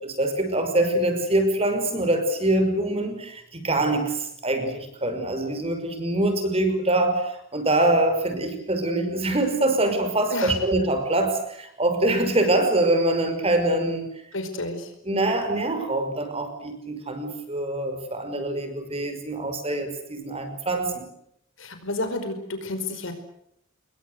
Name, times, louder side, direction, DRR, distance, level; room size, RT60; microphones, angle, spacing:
voice 1, 0.0-14.1 15.0-21.1, right 1 dB, 30° right, 8 dB, 5.8 m, -24 dB
voice 2, 14.3-14.9 21.6-23.1, left 2 dB, 75° left, 7 dB, 5.1 m, -30 dB
27.0 x 22.0 x 8.1 m, 0.75 s
head